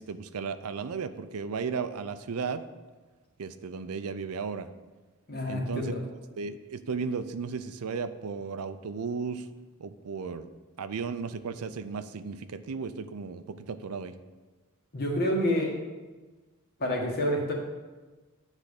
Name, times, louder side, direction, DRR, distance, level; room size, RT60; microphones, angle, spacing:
voice 1, 0.0-2.7 3.4-4.7 5.5-6.0 6.4-9.5 9.8-10.5 10.8-14.2, right 5 dB, 85° right, 12 dB, 0.5 m, -35 dB
voice 2, 5.3-5.9 14.9-15.7 16.8-17.5, left 1 dB, 45° left, -1 dB, 1.6 m, -28 dB
9.9 x 3.5 x 6.5 m, 1.3 s
head